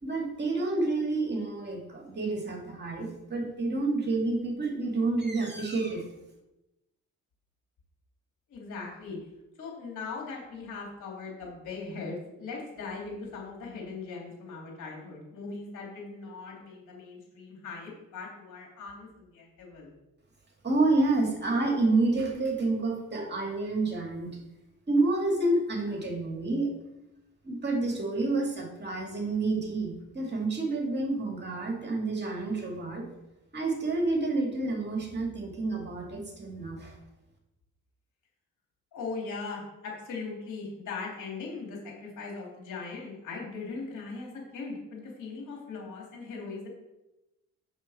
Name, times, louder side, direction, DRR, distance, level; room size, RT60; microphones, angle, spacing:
voice 1, 0.0-6.0 20.6-24.3 24.9-26.7 27.4-33.0 33.5-36.9, right 2 dB, 35° right, 1 dB, 2.1 m, -29 dB
voice 2, 8.5-9.2 9.6-19.9 38.9-46.7, left 4 dB, 80° left, -2 dB, 2.9 m, -39 dB
7.4 x 6.3 x 4.2 m, 0.95 s
cardioid pair, 90°, 30 cm